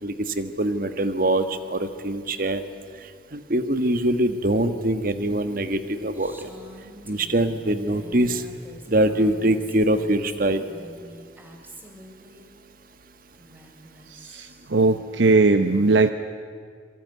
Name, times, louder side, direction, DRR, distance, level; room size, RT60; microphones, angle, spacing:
voice 1, 0.0-2.6 3.3-6.5 7.1-8.4 8.9-10.6, right 1 dB, 45° right, 9 dB, 1.5 m, -23 dB
Female speech woman speaking, 6.1-12.5 13.3-14.7, right 1 dB, 10° right, 2.8 m, -46 dB
voice 2, 14.1-16.1, right 3 dB, 70° right, 9 dB, 0.8 m, -19 dB
25.5 x 24.0 x 9.5 m, 2.1 s
head